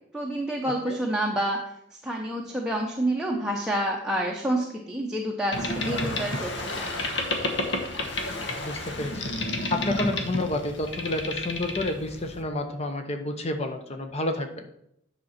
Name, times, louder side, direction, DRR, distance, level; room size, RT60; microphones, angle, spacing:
voice 1, 0.1-1.6 2.0-7.1, right 1 dB, 5° right, -1 dB, 0.8 m, -28 dB
Boat Water vehicle, 5.5-12.4, left 2 dB, 70° left, 1.2 m, -31 dB
voice 2, 8.6-9.2 9.5-14.6, left 2 dB, 35° left, 5 dB, 0.9 m, -30 dB
9.3 x 5.8 x 4.3 m, 0.77 s
head